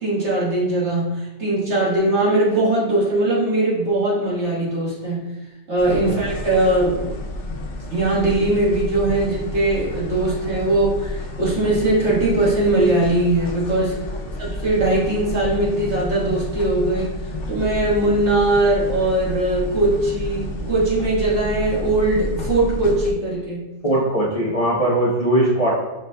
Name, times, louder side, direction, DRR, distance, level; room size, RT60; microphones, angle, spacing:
voice 1, 0.0-5.3 5.7-7.1 7.9-14.0 14.4-17.2 17.5-23.6, right 2 dB, 65° right, -7 dB, 1.8 m, -20 dB
sound 1, 5.8-23.1, left 1 dB, 70° left, 0.9 m, -30 dB
voice 2, 23.8-25.7, right 1 dB, 35° left, -6 dB, 0.8 m, -20 dB
6.1 x 3.9 x 2.2 m, 1.1 s
omnidirectional pair, 1.3 m